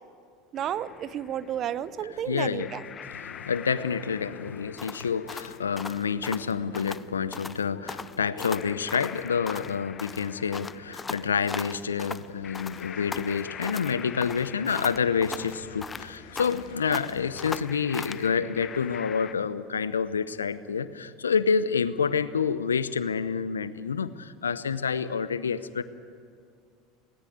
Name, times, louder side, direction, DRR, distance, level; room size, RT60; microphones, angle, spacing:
voice 1, 0.5-2.8, right 10 dB, 45° right, 16 dB, 0.8 m, -32 dB
sound 1, 0.6-19.3, left 8 dB, 35° left, 0.9 m, -46 dB
voice 2, 2.3-2.7 3.1-25.8, left 6 dB, 85° left, 15 dB, 0.7 m, -28 dB
sound 2, 4.8-7.1 7.3-7.6 7.9-9.7 10.0-12.3 12.5-13.9 14.2-16.7 16.9-18.3, left 4 dB, 20° left, 0.5 m, -38 dB
sound 3, 7.0-17.6, left 6 dB, 70° left, 2.5 m, -54 dB
19.5 x 18.0 x 9.4 m, 2.2 s
hypercardioid pair, 75°, 0 cm